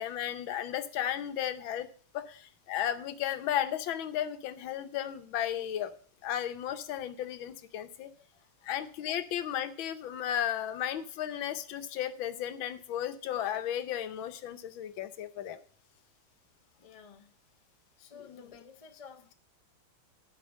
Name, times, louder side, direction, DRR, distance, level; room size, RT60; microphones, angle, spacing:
voice 1, 0.0-1.9 2.1-5.9 6.2-8.1 8.6-15.6 18.3-18.5, left 10 dB, 75° left, 11 dB, 1.6 m, -34 dB
voice 2, 8.3-8.7 16.8-17.3 18.0-19.3, left 6 dB, 55° left, 6 dB, 0.3 m, -53 dB
10.5 x 5.8 x 6.2 m, 0.43 s
omnidirectional pair, 2.2 m